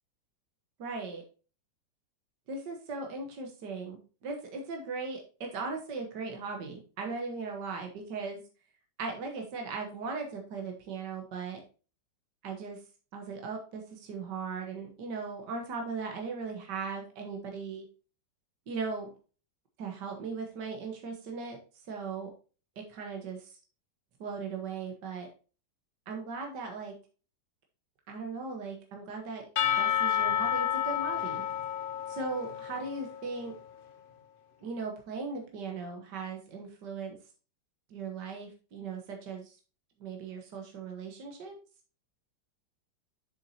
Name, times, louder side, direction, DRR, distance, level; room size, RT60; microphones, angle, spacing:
voice 1, 0.8-1.2 2.5-8.4 9.0-11.6 12.4-12.8 13.1-17.9 18.7-19.1 19.8-21.6 21.9-22.3 22.8-23.4 24.2-25.3 26.1-27.0 28.1-29.5 29.8-31.4 32.1-33.5 34.6-37.2 37.9-39.6 40.0-41.6, right 4 dB, 70° right, 2 dB, 1.9 m, -38 dB
Percussion / Church bell, 29.6-33.4, left 10 dB, 80° left, 0.4 m, -30 dB
7.3 x 7.0 x 2.8 m, 0.35 s
omnidirectional pair, 1.9 m